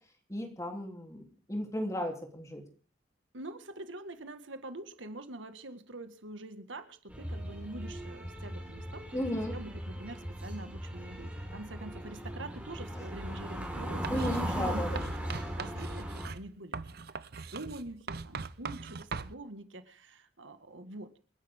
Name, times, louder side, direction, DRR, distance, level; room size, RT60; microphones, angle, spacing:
voice 1, 0.3-2.6 9.1-9.6 12.9-13.0 14.1-15.0, left 1 dB, 15° left, 3 dB, 3.2 m, -35 dB
voice 2, 3.3-9.2 9.5-15.3 15.6-17.0 17.5-21.1, right 2 dB, 80° right, 9 dB, 1.7 m, -45 dB
sound 1, 7.1-16.3, equal, 10° right, 4.5 m, -38 dB
Writing, 14.0-14.4 15.0-19.3, right 5 dB, 55° right, 0.7 m, -41 dB
28.5 x 10.5 x 3.6 m, 0.39 s
head